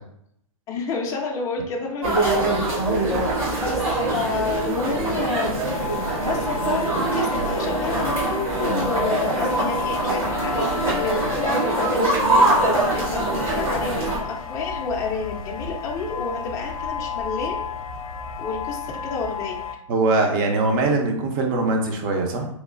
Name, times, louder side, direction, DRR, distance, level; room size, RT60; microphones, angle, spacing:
voice 1, 0.7-2.5 3.0-3.2 3.5-5.5 6.2-12.3 12.6-17.6 18.4-19.6, left 4 dB, 20° left, 0 dB, 0.3 m, -30 dB
sound 1, 2.0-14.2, right 2 dB, 90° right, 1.3 m, -23 dB
sound 2, 5.6-19.7, left 6 dB, 80° left, 0.4 m, -32 dB
voice 2, 19.9-22.5, right 3 dB, 40° right, 3 dB, 0.5 m, -22 dB
3.0 x 2.0 x 2.4 m, 0.74 s
hypercardioid pair, 135°, 18 cm